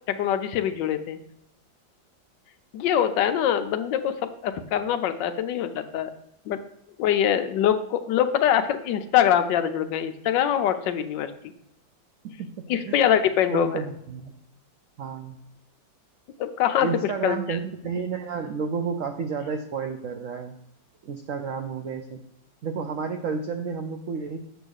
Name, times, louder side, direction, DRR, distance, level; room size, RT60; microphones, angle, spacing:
voice 1, 0.1-1.2 2.7-6.1 6.5-6.6 7.0-11.3 12.7-13.8 16.4-16.9 17.2-17.6, left 10 dB, 75° left, 9 dB, 1.2 m, -24 dB
voice 2, 13.5-14.3 15.0-15.4 16.8-20.6 21.0-22.2 22.6-24.4, right 5 dB, 80° right, 5 dB, 0.7 m, -31 dB
8.0 x 3.0 x 6.3 m, 0.79 s
omnidirectional pair, 2.1 m